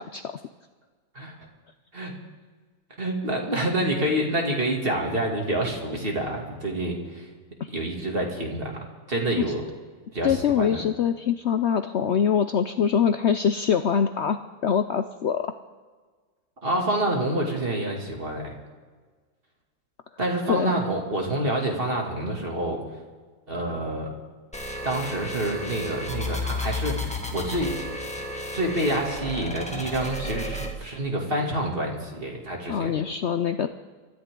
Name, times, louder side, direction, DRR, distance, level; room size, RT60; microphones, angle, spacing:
voice 1, 3.0-7.3 7.7-8.8 9.1-9.6 10.1-10.8 16.6-18.5 20.2-22.8 23.5-24.1 24.8-27.8 28.5-33.0, right 1 dB, 30° right, 0 dB, 2.7 m, -27 dB
voice 2, 10.2-14.4 14.6-15.5 20.5-20.7 32.7-33.7, left 7 dB, 80° left, 9 dB, 0.6 m, -23 dB
sound 1, 24.5-30.7, left 1 dB, 5° left, 1.4 m, -32 dB
24.5 x 13.5 x 3.8 m, 1.4 s
omnidirectional pair, 1.9 m